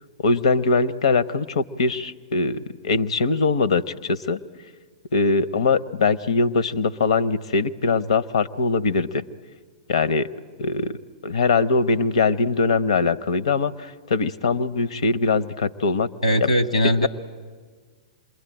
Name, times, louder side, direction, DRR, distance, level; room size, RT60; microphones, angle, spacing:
voice 1, 0.2-4.4 5.1-9.2 9.9-10.3 10.6-11.0 11.2-16.1 16.4-16.5, left 4 dB, 65° left, 13 dB, 0.8 m, -22 dB
voice 2, 16.2-17.1, equal, 85° left, 8 dB, 1.6 m, -20 dB
27.0 x 21.5 x 9.0 m, 1.5 s
figure-of-eight pair, 105°, 3 cm